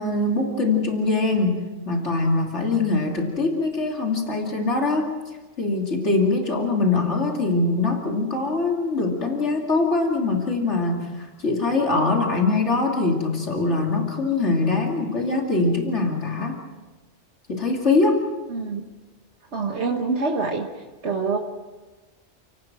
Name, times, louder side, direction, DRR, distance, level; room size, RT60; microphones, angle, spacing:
voice 1, 0.0-5.1 5.6-16.6 17.5-18.2, left 3 dB, 90° left, 1 dB, 3.1 m, -23 dB
voice 2, 18.5-18.9 19.5-20.7 21.0-21.4, right 4 dB, 75° right, 1 dB, 1.8 m, -25 dB
29.5 x 18.0 x 6.1 m, 1.3 s
omnidirectional pair, 1.1 m